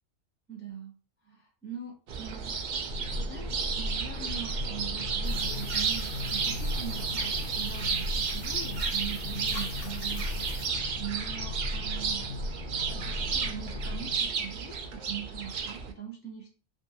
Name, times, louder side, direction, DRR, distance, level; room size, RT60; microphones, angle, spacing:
voice 1, 0.5-0.9 1.2-2.8 3.1-12.3 12.9-16.5, right 8 dB, 10° right, -3 dB, 0.5 m, -42 dB
sound 1, 2.1-15.9, right 6 dB, 75° right, 0.4 m, -33 dB
sound 2, 2.9-14.3, left 2 dB, 65° left, 0.8 m, -36 dB
sound 3, 5.2-10.7, left 3 dB, 85° left, 1.1 m, -45 dB
2.6 x 2.6 x 2.8 m, 0.36 s
omnidirectional pair, 1.3 m